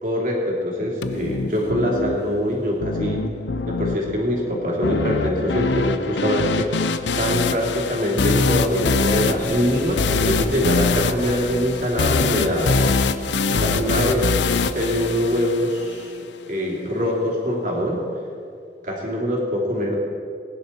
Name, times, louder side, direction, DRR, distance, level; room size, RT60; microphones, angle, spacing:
voice 1, 0.0-3.2 3.7-6.7 7.1-12.8 13.5-14.4 14.7-16.1 16.5-18.0 18.8-20.0, equal, 45° right, -2 dB, 3.0 m, -23 dB
sound 1, 1.0-16.0, left 4 dB, 85° left, 0.6 m, -24 dB
sound 2, 9.3-13.5, equal, 15° left, 2.6 m, -38 dB
20.0 x 10.5 x 4.4 m, 2.4 s
head